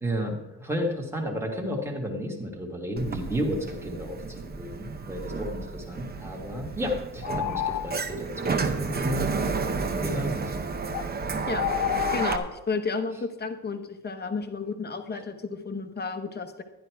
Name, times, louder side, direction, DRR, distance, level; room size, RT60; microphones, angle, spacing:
voice 1, 0.0-9.3 10.0-10.7, equal, 5° right, 0 dB, 1.6 m, -32 dB
Sliding door, 3.0-12.4, right 4 dB, 25° right, 0.8 m, -31 dB
sound 1, 7.2-8.1 10.9-11.1 11.5-12.4, left 12 dB, 55° left, 0.6 m, -29 dB
voice 2, 12.1-16.6, left 4 dB, 25° left, 8 dB, 1.0 m, -32 dB
12.0 x 10.5 x 4.6 m, 1.0 s
cardioid pair, 165°, 37 cm